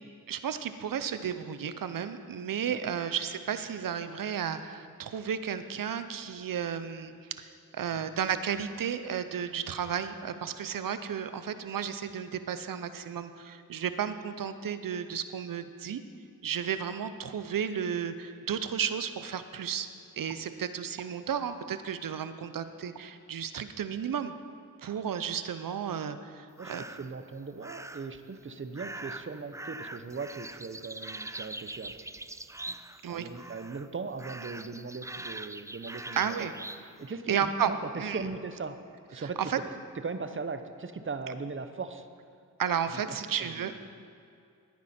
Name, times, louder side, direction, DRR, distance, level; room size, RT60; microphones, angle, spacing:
voice 1, 0.3-16.0 16.4-19.9 20.2-24.3 24.8-26.8 33.0-33.3 36.2-36.5 37.3-37.7 38.0-38.2 39.2-39.6 42.6-43.8, right 8 dB, 80° right, 11 dB, 0.7 m, -33 dB
sound 1, 26.6-27.1 27.6-28.2 28.7-33.1 33.3-33.9 34.2-36.8, right 2 dB, 10° right, 0.4 m, -42 dB
voice 2, 26.6-32.0 32.7-32.8 33.1-36.5 36.8-38.8 39.1-39.4 40.0-42.1 42.9-43.8, right 4 dB, 40° right, 10 dB, 0.8 m, -39 dB
15.0 x 9.6 x 4.3 m, 2.4 s
cardioid pair, 50°, 33 cm